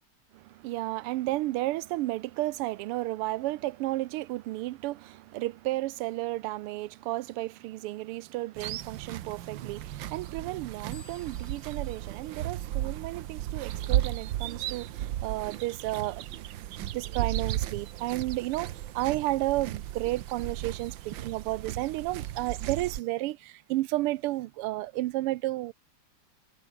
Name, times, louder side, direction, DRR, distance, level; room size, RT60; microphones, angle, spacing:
voice 1, 0.3-16.3 16.9-25.7, right 17 dB, 90° right, 1.6 m, -32 dB
sound 1, 8.6-23.0, right 12 dB, 65° right, 1.5 m, -35 dB
sound 2, 10.9-13.4, left 6 dB, 60° left, 3.3 m, -58 dB
omnidirectional pair, 2.4 m